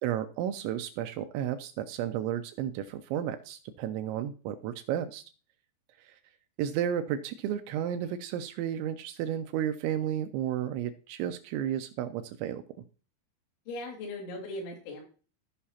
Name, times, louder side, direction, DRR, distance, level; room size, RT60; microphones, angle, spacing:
voice 1, 0.0-5.2 6.0-6.2 6.6-12.6, right 10 dB, 85° right, 9 dB, 2.8 m, -32 dB
voice 2, 13.7-15.0, left 2 dB, 70° left, 1 dB, 4.5 m, -38 dB
15.0 x 5.5 x 2.8 m, 0.38 s
omnidirectional pair, 5.6 m